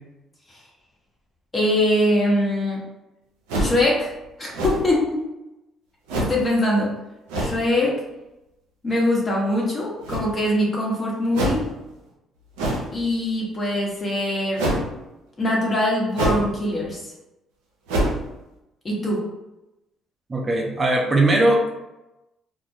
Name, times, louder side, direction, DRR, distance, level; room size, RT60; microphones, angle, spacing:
voice 1, 1.5-2.8 3.6-4.1 4.4-5.2 6.2-6.9 7.4-8.0 8.8-11.6 12.9-14.7 15.4-17.1 18.8-19.2, left 1 dB, 35° left, -3 dB, 0.9 m, -22 dB
sound 1, 3.5-3.9 4.5-5.0 6.1-6.4 7.3-7.6 10.0-10.5 11.3-11.7 12.6-13.0 14.6-14.9 16.1-16.5 16.9-17.0 17.9-18.3, right 1 dB, 85° right, 0.4 m, -24 dB
voice 2, 20.3-21.7, right 1 dB, 35° right, 0 dB, 0.5 m, -19 dB
2.1 x 2.1 x 2.7 m, 0.95 s
hypercardioid pair, 60°, 0 cm